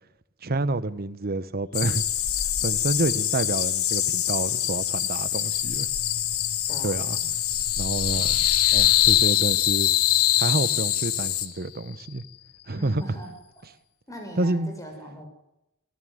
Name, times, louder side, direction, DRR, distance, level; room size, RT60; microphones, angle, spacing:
voice 1, 0.4-2.0 2.6-5.9 6.8-7.2 7.8-8.3 8.7-9.9 10.4-12.2 12.7-13.0 14.4-14.8, right 2 dB, 45° right, 1.0 m, -28 dB
sound 1, 1.7-11.5, left 11 dB, 70° left, 1.8 m, -27 dB
sound 2, 5.5-11.4, left 14 dB, 90° left, 0.9 m, -24 dB
voice 2, 6.7-7.3 8.1-8.4 12.8-13.3 14.1-15.3, equal, 15° left, 6.5 m, -41 dB
26.0 x 15.0 x 8.0 m
head